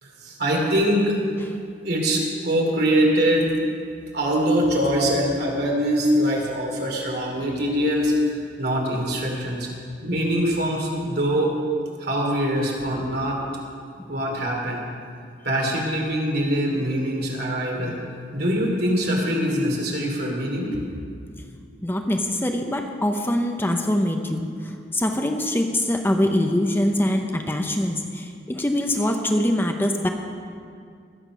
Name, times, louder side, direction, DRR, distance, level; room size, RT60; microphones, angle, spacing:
voice 1, 0.0-1.2 1.8-3.5 4.1-9.7 10.0-11.5 12.0-13.4 14.1-14.8 15.4-18.0 18.3-20.8, equal, 60° right, -1 dB, 2.8 m, -23 dB
voice 2, 21.8-30.1, left 1 dB, 10° left, 4 dB, 0.7 m, -23 dB
20.5 x 7.4 x 6.1 m, 2.3 s
head